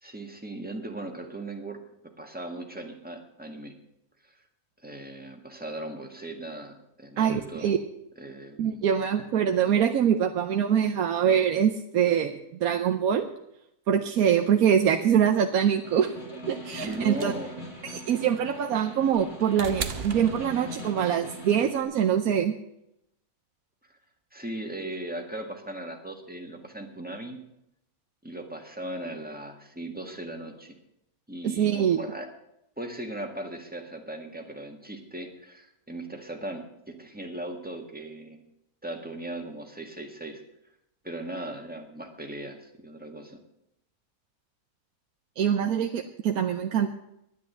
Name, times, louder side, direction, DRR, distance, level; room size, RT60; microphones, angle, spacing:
voice 1, 0.0-3.7 4.2-4.4 4.8-7.7 8.2-9.0 16.8-17.5 23.9-24.0 24.3-27.4 28.2-30.7 31.3-32.3 32.8-38.4 38.8-40.4 41.0-43.4, right 1 dB, 5° right, 3 dB, 1.7 m, -38 dB
voice 2, 7.2-7.8 8.6-13.3 13.9-16.1 16.5-17.3 17.8-22.5 31.6-32.0 45.4-46.9, right 8 dB, 80° right, 4 dB, 1.2 m, -24 dB
Snare drum, 15.7-21.8, equal, 45° left, 2.6 m, -41 dB
sound 1, 16.8-21.1 22.3-22.4, right 6 dB, 50° right, 0.9 m, -37 dB
10.5 x 10.0 x 8.0 m, 0.81 s
omnidirectional pair, 1.5 m